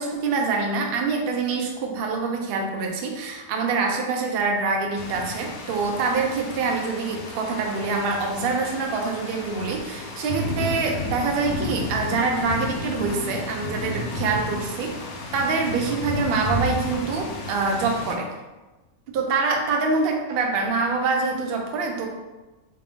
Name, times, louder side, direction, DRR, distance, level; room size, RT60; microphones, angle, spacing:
voice 1, 0.0-15.0 15.3-18.3 19.1-22.1, right 4 dB, 60° right, 2 dB, 0.6 m, -25 dB
sound 1, 4.9-18.1, left 2 dB, 80° left, 1.0 m, -32 dB
3.3 x 2.5 x 3.4 m, 1.1 s
omnidirectional pair, 1.5 m